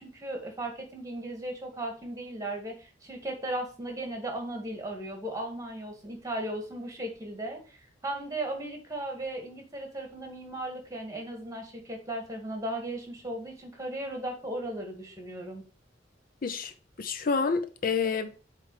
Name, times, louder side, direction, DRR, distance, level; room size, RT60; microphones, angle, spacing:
voice 1, 0.0-15.6, right 1 dB, 20° right, 1.7 m, -36 dB
voice 2, 16.4-16.7 17.0-18.5, left 5 dB, 50° left, 0.6 m, -29 dB
8.2 x 3.4 x 4.7 m
head